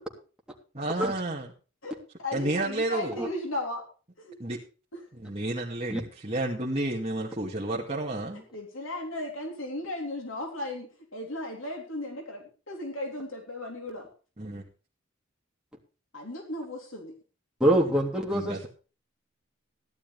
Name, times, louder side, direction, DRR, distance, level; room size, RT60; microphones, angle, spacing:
voice 1, 0.7-1.5 2.3-3.2 4.4-4.6 5.1-8.4 14.4-14.6 18.3-18.7, right 2 dB, 30° right, -4 dB, 2.3 m, -31 dB
voice 2, 2.2-3.8 4.2-4.4 4.9-5.0 8.5-10.9 11.1-14.1 16.1-17.1, left 1 dB, 70° left, 2 dB, 3.4 m, -36 dB
voice 3, 17.6-18.7, right 1 dB, 5° right, -1 dB, 3.2 m, -24 dB
15.5 x 12.0 x 3.4 m, 0.36 s
head